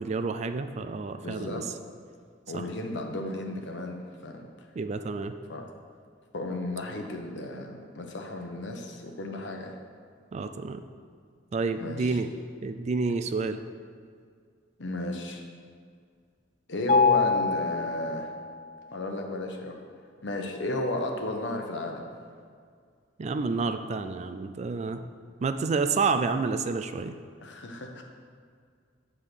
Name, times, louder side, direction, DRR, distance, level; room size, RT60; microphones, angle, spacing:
voice 1, 0.0-1.6 2.5-2.6 4.7-5.3 10.3-10.8 11.5-12.3 12.6-13.6 23.2-25.0 25.4-27.2, right 4 dB, 35° right, 9 dB, 0.3 m, -29 dB
voice 2, 1.1-1.7 2.5-4.4 5.5-5.7 6.3-9.8 11.7-12.2 14.8-15.4 16.7-18.3 18.9-19.8 20.2-22.1 27.4-28.0, left 1 dB, 70° left, 3 dB, 0.9 m, -33 dB
Mallet percussion, 16.9-18.9, left 4 dB, 40° left, 0.3 m, -25 dB
7.9 x 3.7 x 6.6 m, 2.1 s
head